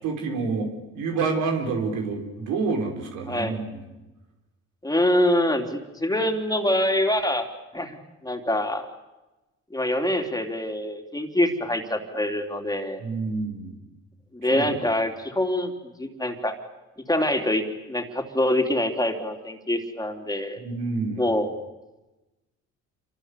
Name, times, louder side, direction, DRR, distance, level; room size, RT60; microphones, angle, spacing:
voice 1, 0.0-3.8 13.0-13.8 14.5-14.7 20.6-21.3, right 4 dB, 90° right, 3 dB, 5.5 m, -28 dB
voice 2, 3.3-3.6 4.8-7.5 7.7-8.0 8.2-8.8 9.7-13.0 14.3-15.7 16.0-16.6 17.1-20.6 21.2-21.5, left 1 dB, 10° left, 4 dB, 3.4 m, -25 dB
27.5 x 25.0 x 8.4 m, 1.1 s
cardioid pair, 90°, 30 cm